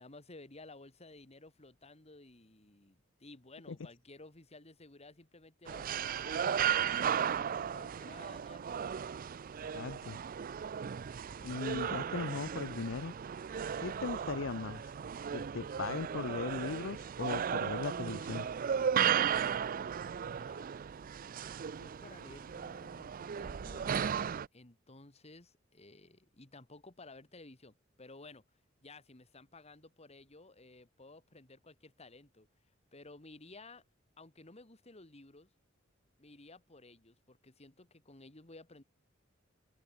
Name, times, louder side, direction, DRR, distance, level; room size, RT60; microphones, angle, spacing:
voice 1, 0.0-8.7 20.2-20.7 21.8-24.0 24.5-28.4 28.8-32.5 32.9-33.8 34.2-35.5 36.2-38.8, left 2 dB, 35° left, 2.3 m, -55 dB
sound 1, 5.7-24.5, right 8 dB, 45° right, 0.4 m, -35 dB
voice 2, 9.7-10.2 11.4-13.1 13.8-14.9 15.3-18.5, left 4 dB, 70° left, 0.6 m, -38 dB
open air
head